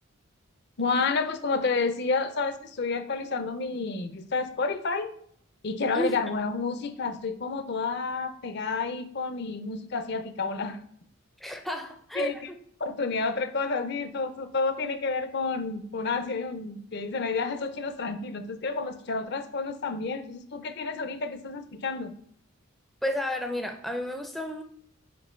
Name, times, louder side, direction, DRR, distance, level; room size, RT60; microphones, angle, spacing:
voice 1, 0.8-5.1 5.6-10.8 12.2-12.4 12.8-22.1, left 4 dB, 50° left, 10 dB, 0.5 m, -30 dB
voice 2, 11.4-12.4 23.0-24.6, equal, ahead, 4 dB, 0.4 m, -31 dB
5.1 x 4.6 x 4.4 m, 0.65 s
head